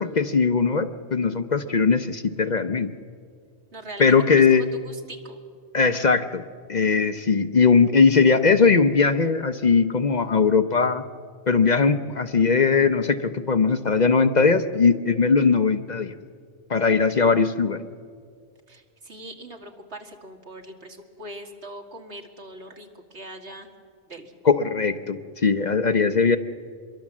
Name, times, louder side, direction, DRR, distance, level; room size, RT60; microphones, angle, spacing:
voice 1, 0.0-2.9 4.0-4.6 5.7-6.4 6.7-11.0 11.5-16.1 16.7-17.8 24.4-26.4, left 5 dB, 45° left, 9 dB, 0.8 m, -20 dB
voice 2, 3.7-5.4 18.7-23.7 24.1-24.3, right 1 dB, 70° right, 4 dB, 2.3 m, -41 dB
26.0 x 22.5 x 7.3 m, 2.1 s
omnidirectional pair, 1.2 m